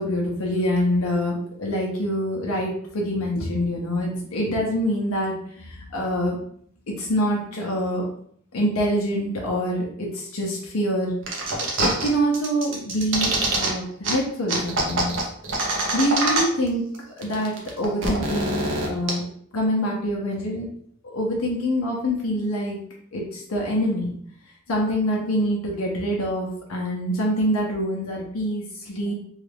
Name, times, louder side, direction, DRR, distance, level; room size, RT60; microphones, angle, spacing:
voice 1, 0.0-6.4 7.0-8.1 8.5-11.1 11.8-15.2 15.9-16.9 17.2-19.2 19.5-20.7 21.1-22.8 23.1-24.2 24.7-29.1, equal, 85° left, -2 dB, 0.7 m, -25 dB
sound 1, 11.3-12.1 12.3-13.7 14.0-14.1 14.5-16.7 16.9-17.0 17.2-19.1, right 2 dB, 60° right, 0.8 m, -24 dB
3.1 x 2.4 x 3.3 m, 0.64 s
head